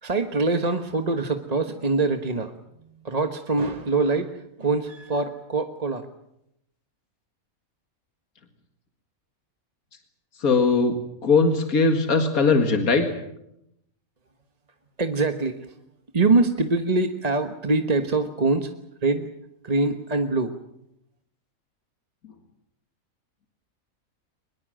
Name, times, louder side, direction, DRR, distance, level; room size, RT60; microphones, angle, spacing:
voice 1, 0.0-2.5 3.0-6.1 15.0-15.7 16.1-18.7 19.0-19.3 19.6-20.5, right 3 dB, 30° right, 6 dB, 1.3 m, -24 dB
voice 2, 10.4-10.9 11.2-13.1, left 4 dB, 80° left, 5 dB, 2.4 m, -19 dB
24.0 x 21.5 x 7.7 m, 0.81 s
omnidirectional pair, 1.5 m